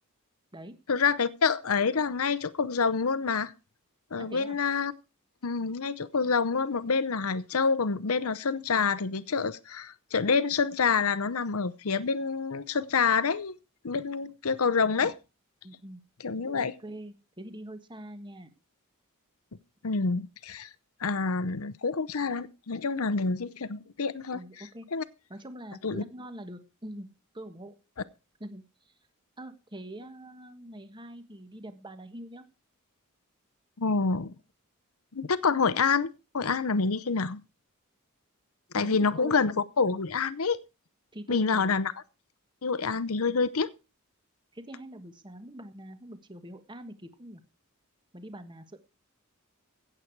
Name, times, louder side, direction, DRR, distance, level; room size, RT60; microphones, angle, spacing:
voice 1, 0.9-3.5 4.1-4.9 5.4-13.5 13.8-15.1 16.2-16.7 19.8-20.7 21.0-24.4 24.9-25.0 25.8-26.0 33.8-34.3 35.1-37.4 38.7-40.6 41.3-41.9 42.6-43.7, left 5 dB, 75° left, 0.8 m, -27 dB
voice 2, 4.2-4.6 15.6-16.0 16.5-18.5 24.3-24.9 25.3-27.1 27.3-27.7 28.4-28.9 29.4-32.4 38.8-39.4 41.1-41.7 43.3-43.4 44.5-47.4 48.1-48.8, right 1 dB, 20° right, 1.5 m, -44 dB
16.0 x 8.2 x 4.6 m
head